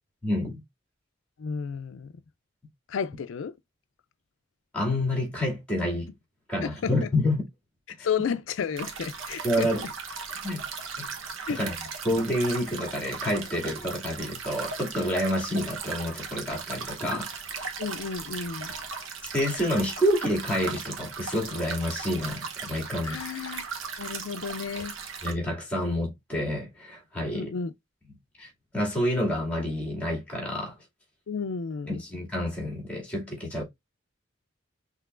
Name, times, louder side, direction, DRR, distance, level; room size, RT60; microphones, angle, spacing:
voice 1, 0.2-0.6 4.7-6.1 6.5-7.4 9.4-9.8 10.4-10.6 11.0-11.1 11.5-11.7 12.0-17.7 19.3-23.2 25.2-27.5 28.4-30.7 31.9-33.6, left 1 dB, 5° left, 2.3 m, -28 dB
voice 2, 1.4-2.1 2.9-3.5 6.6-7.1 8.0-9.7 11.5-11.6 17.8-18.7 23.0-23.7 24.0-24.9 27.3-27.7 31.3-32.0, left 6 dB, 80° left, 0.4 m, -32 dB
sound 1, 8.8-25.3, right 5 dB, 85° right, 0.9 m, -37 dB
5.8 x 3.1 x 2.4 m
head